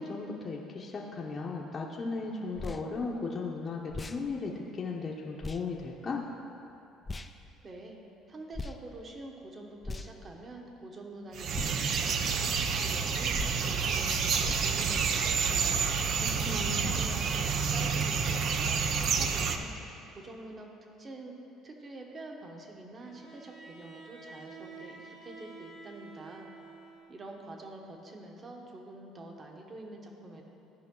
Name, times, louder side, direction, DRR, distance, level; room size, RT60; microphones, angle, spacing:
voice 1, 0.0-6.2 16.2-17.1, left 4 dB, 35° left, -3 dB, 0.9 m, -36 dB
sound 1, 2.6-2.8 3.9-4.2 5.4-5.6 7.1-7.3 8.5-8.8 9.8-10.3 11.5-11.8 13.3-13.6 14.4-14.7, left 2 dB, 20° left, 0.4 m, -38 dB
voice 2, 7.6-8.0 8.3-15.9 16.5-19.7 20.1-20.7 21.0-21.3 21.6-26.5 27.1-30.4, right 2 dB, 35° right, 1 dB, 1.3 m, -46 dB
sound 2, 11.3-19.6, right 6 dB, 55° right, 0.6 m, -29 dB
Bowed string instrument, 23.0-27.3, right 4 dB, 75° right, 1.8 m, -50 dB
14.5 x 5.2 x 3.9 m, 2.8 s
supercardioid pair, 90°, 0 cm